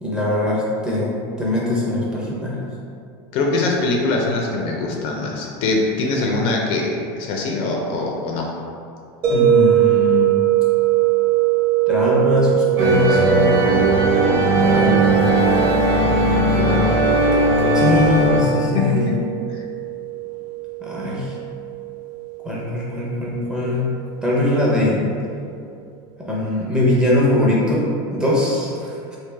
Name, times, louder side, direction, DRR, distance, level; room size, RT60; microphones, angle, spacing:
voice 1, 0.0-2.6 9.3-10.5 11.9-13.7 14.6-15.5 17.7-19.1 20.8-21.3 22.4-23.9 24.2-25.1 26.2-29.2, left 1 dB, 5° right, -6 dB, 0.6 m, -21 dB
voice 2, 3.3-8.5 16.6-16.9 18.7-19.1 19.5-19.6, left 3 dB, 45° left, 0 dB, 0.4 m, -22 dB
sound 1, 9.2-24.2, right 14 dB, 40° right, 1.1 m, -22 dB
sound 2, 12.8-18.4, right 1 dB, 60° right, 0.7 m, -17 dB
3.3 x 2.7 x 3.2 m, 2.5 s
supercardioid pair, 155°, 13 cm